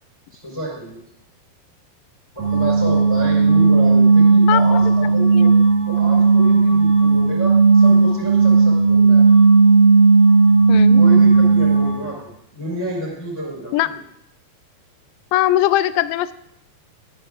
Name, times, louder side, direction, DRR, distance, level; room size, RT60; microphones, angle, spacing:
voice 1, 0.3-1.0 2.3-5.5 5.9-9.3 10.9-13.9, right 1 dB, 10° left, -5 dB, 4.3 m, -30 dB
sound 1, 2.4-12.1, right 4 dB, 70° right, 3.4 m, -14 dB
voice 2, 4.5-4.8 5.2-5.5 10.7-11.0 13.7-13.9 15.3-16.3, left 14 dB, 80° left, 13 dB, 2.1 m, -20 dB
22.5 x 9.5 x 2.5 m, 0.75 s
omnidirectional pair, 4.2 m